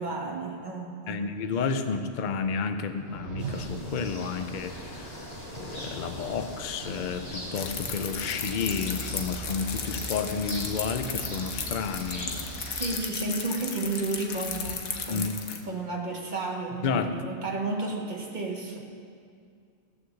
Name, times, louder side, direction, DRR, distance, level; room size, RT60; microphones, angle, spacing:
voice 1, 0.0-1.2 12.7-15.4 15.6-18.8, right 3 dB, 35° right, 0 dB, 1.6 m, -32 dB
voice 2, 1.1-5.2 5.6-12.8 15.1-15.3 16.8-17.2, left 5 dB, 45° left, 8 dB, 0.7 m, -31 dB
sound 1, 2.9-4.2, right 4 dB, 55° right, 1.1 m, -37 dB
sound 2, 3.4-12.9, right 1 dB, 25° left, 2.8 m, -39 dB
sound 3, 7.5-15.6, left 6 dB, 80° left, 1.4 m, -35 dB
16.5 x 6.5 x 7.1 m, 2.3 s
omnidirectional pair, 1.4 m